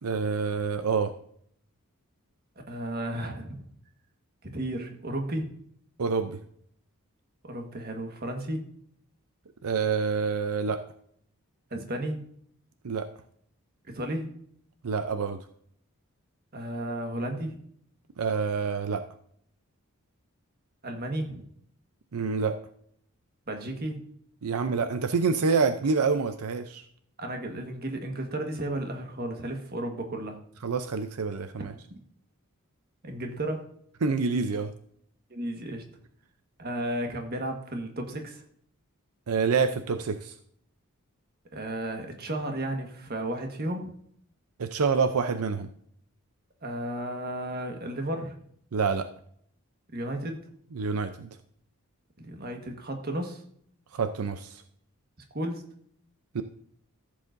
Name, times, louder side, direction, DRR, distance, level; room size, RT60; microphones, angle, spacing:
voice 1, 0.0-1.1 6.0-6.4 9.6-10.8 12.8-13.1 14.8-15.4 18.2-19.0 22.1-22.5 24.4-26.8 30.6-31.7 34.0-34.7 39.3-40.3 44.6-45.7 48.7-49.1 50.7-51.3 53.9-54.6 56.3-56.4, right 5 dB, 85° right, 9 dB, 0.6 m, -27 dB
voice 2, 2.7-3.6 4.4-5.5 7.4-8.6 11.7-12.2 13.9-14.3 16.5-17.6 20.8-21.4 23.5-24.0 27.2-30.4 33.0-33.7 35.3-35.8 36.6-38.4 41.5-43.9 46.6-48.4 49.9-50.4 52.2-53.4 55.3-55.6, right 1 dB, 45° right, 4 dB, 1.5 m, -33 dB
14.5 x 7.6 x 2.6 m, 0.65 s
head